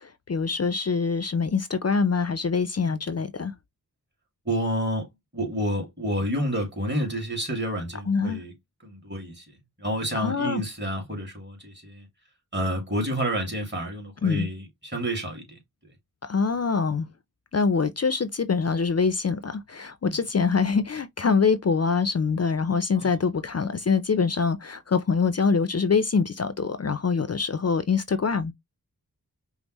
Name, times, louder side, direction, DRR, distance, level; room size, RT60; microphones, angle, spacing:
voice 1, 0.3-3.5 8.1-8.4 10.2-10.6 14.2-14.5 16.2-17.1 17.5-28.5, left 5 dB, 45° left, 0.4 m, -24 dB
voice 2, 4.5-5.1 5.3-8.5 8.8-9.4 9.8-12.1 12.5-15.4 22.9-23.1, equal, 30° right, 2.1 m, -29 dB
5.3 x 2.0 x 3.0 m
wide cardioid pair, 60°, 37 cm